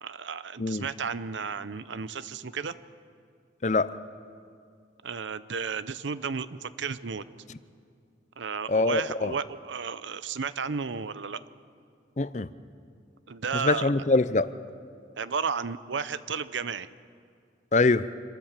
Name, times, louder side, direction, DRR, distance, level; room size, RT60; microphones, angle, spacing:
voice 1, 0.0-2.7 5.0-7.2 8.4-11.4 13.3-14.0 15.2-16.9, right 5 dB, 85° right, 14 dB, 0.7 m, -33 dB
voice 2, 8.7-9.3 12.2-12.5 13.5-14.5 17.7-18.1, left 3 dB, 40° left, 15 dB, 0.5 m, -24 dB
26.0 x 13.5 x 7.5 m, 2.3 s
head